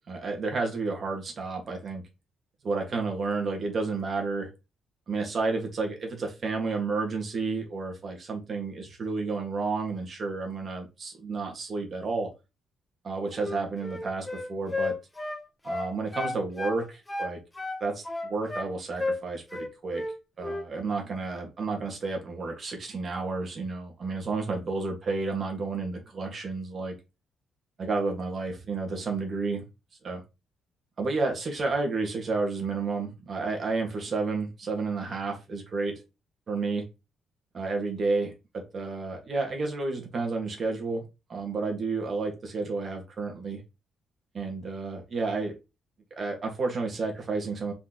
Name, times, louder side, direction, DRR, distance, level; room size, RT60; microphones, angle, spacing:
voice 1, 0.1-2.0 2.6-4.5 5.1-12.3 13.0-14.9 15.6-17.4 17.8-20.0 20.4-26.9 27.8-29.6 30.0-30.2 31.0-36.0 36.5-36.8 37.5-41.0 41.3-43.6 44.3-45.5 46.2-47.7, right 3 dB, 45° right, 2 dB, 1.7 m, -31 dB
Wind instrument woodwind instrument, 13.3-16.8 17.1-18.7 19.0-19.2 19.5-20.2 20.4-20.7, left 2 dB, 15° left, 0.8 m, -33 dB
4.4 x 4.0 x 2.9 m, 0.27 s
cardioid pair, 90°, 0 cm